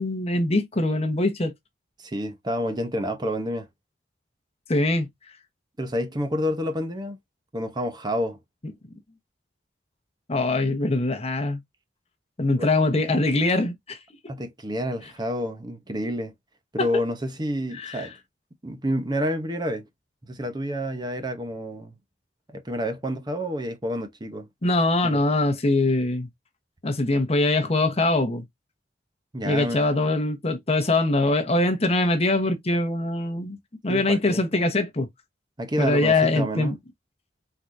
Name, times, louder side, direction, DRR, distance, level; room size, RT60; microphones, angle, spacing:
voice 1, 0.0-1.5 4.7-5.1 10.3-11.6 12.4-14.0 14.2-14.3 16.8-16.9 17.8-18.1 24.6-26.3 26.8-28.4 29.4-33.6 33.8-35.1 35.8-36.7, left 2 dB, 35° left, 1.0 m, -23 dB
voice 2, 2.0-3.7 5.8-7.2 7.5-8.4 12.5-12.7 14.3-16.3 16.7-18.1 18.6-19.9 20.3-21.9 22.5-24.5 25.0-25.2 29.3-29.8 33.9-34.4 35.6-36.8, equal, 25° right, 0.9 m, -29 dB
4.6 x 3.9 x 2.6 m
head